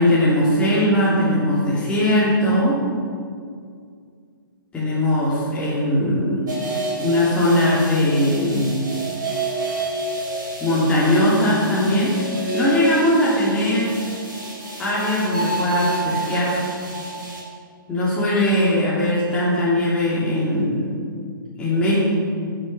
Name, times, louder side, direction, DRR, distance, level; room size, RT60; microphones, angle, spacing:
voice 1, 0.0-2.8 4.7-6.4 7.0-8.8 10.6-12.2 12.5-14.0 14.8-16.6 17.9-20.8 21.6-22.0, left 1 dB, 10° left, -9 dB, 2.9 m, -20 dB
sound 1, 6.5-17.4, right 2 dB, 60° right, 3.4 m, -29 dB
15.5 x 7.9 x 5.8 m, 2.2 s
figure-of-eight pair, 120°, 12 cm